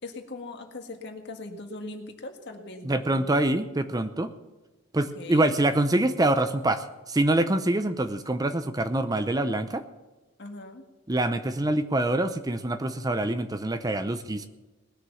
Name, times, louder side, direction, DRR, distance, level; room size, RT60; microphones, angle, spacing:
voice 1, 0.0-3.4 5.2-5.5 10.4-10.9, left 2 dB, 60° left, 4 dB, 1.9 m, -40 dB
voice 2, 2.8-4.3 4.9-9.8 11.1-14.5, right 1 dB, 20° right, 10 dB, 0.6 m, -25 dB
20.0 x 6.6 x 7.1 m, 1.1 s
head